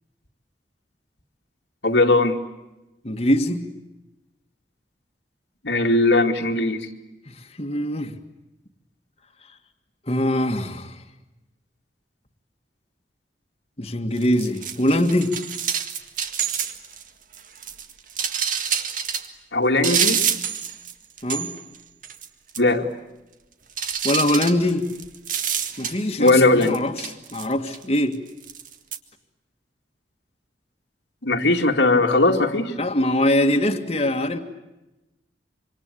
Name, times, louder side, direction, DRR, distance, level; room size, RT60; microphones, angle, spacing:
voice 1, 1.8-2.4 5.6-6.9 19.5-20.2 22.6-22.9 26.2-26.8 31.2-32.7, left 2 dB, 85° left, 3 dB, 2.5 m, -19 dB
voice 2, 3.0-3.7 7.3-8.1 10.1-11.0 13.8-15.4 21.2-21.5 24.0-24.9 25.8-28.2 32.8-34.4, left 1 dB, 35° left, 3 dB, 2.0 m, -23 dB
sound 1, 14.2-17.0 17.3-19.3 19.8-20.9 21.2-21.8 22.0-22.3 22.5-22.6 23.8-26.3 26.6-27.8 28.4-29.0, right 8 dB, 50° right, 1.9 m, -27 dB
26.5 x 26.0 x 8.5 m, 0.98 s
head